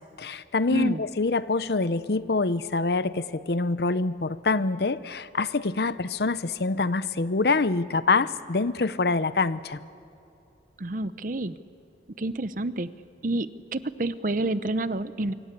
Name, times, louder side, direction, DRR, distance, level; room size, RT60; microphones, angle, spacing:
voice 1, 0.2-9.8, left 3 dB, 60° left, 15 dB, 0.7 m, -25 dB
voice 2, 0.7-1.0 10.8-11.6 12.2-12.9 13.2-15.3, right 2 dB, 45° right, 14 dB, 0.8 m, -29 dB
26.0 x 23.5 x 8.4 m, 2.8 s
head